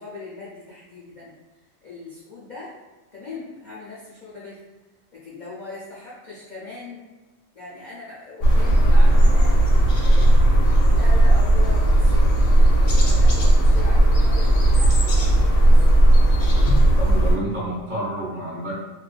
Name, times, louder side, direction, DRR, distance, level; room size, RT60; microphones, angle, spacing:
voice 1, 0.0-1.3 1.8-2.7 3.1-4.6 5.1-7.0 7.5-9.6 10.0-12.5 13.0-15.7, left 3 dB, 55° left, -8 dB, 0.5 m, -39 dB
sound 1, 8.4-17.3, right 1 dB, 85° left, 1.1 m, -15 dB
voice 2, 17.0-18.7, right 1 dB, 50° right, -7 dB, 0.6 m, -29 dB
2.5 x 2.2 x 2.4 m, 1.2 s
omnidirectional pair, 1.4 m